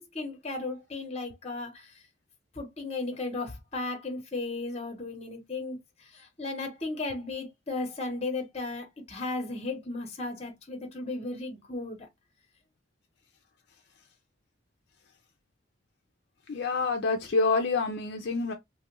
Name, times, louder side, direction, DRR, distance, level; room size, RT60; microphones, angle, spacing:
voice 1, 0.1-1.9 2.5-12.1, left 3 dB, 35° left, 0.9 m, -35 dB
voice 2, 16.5-18.5, left 3 dB, 60° left, 0.4 m, -27 dB
2.9 x 2.4 x 2.9 m
head